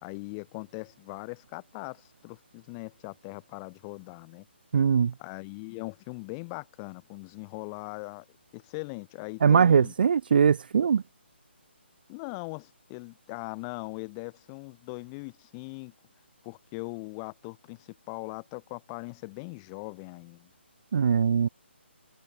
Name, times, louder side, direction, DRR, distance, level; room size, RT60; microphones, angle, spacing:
voice 1, 0.0-4.4 5.2-8.2 8.5-9.9 12.1-15.9 16.4-20.5, left 33 dB, 20° left, 2.9 m, -40 dB
voice 2, 4.7-5.1 9.4-11.0 20.9-21.5, right 7 dB, 50° right, 0.4 m, -21 dB
hypercardioid pair, 165°, 6 cm